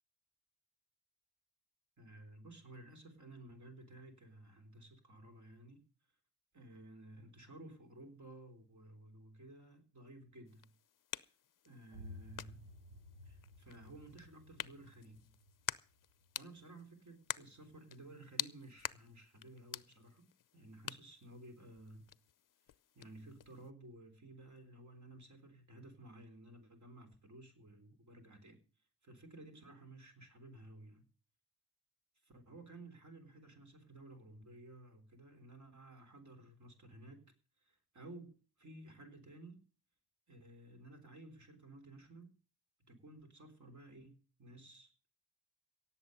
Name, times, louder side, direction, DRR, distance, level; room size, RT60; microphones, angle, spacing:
voice 1, 2.0-5.8 6.5-10.7 11.6-12.7 13.2-15.3 16.3-20.3 20.5-22.1 22.9-31.0 32.2-39.7 40.3-42.4 42.9-45.1, right 2 dB, 45° right, 3.8 m, -55 dB
sound 1, 10.5-23.7, left 10 dB, 55° left, 0.6 m, -48 dB
sound 2, 11.9-17.5, left 1 dB, 85° right, 5.2 m, -56 dB
17.5 x 7.7 x 6.5 m
cardioid pair, 90°, 39 cm